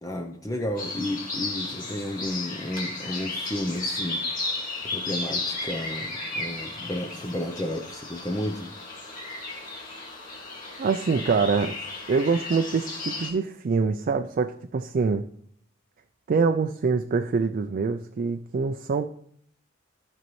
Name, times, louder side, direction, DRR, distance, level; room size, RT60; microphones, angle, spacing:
voice 1, 0.0-4.6 4.8-8.7, left 1 dB, 15° left, 0.6 m, -32 dB
sound 1, 0.8-13.3, left 2 dB, 45° left, 2.1 m, -34 dB
voice 2, 10.8-11.8 12.1-15.2 16.3-19.1, right 4 dB, 45° right, 0.3 m, -25 dB
14.5 x 5.3 x 3.1 m
head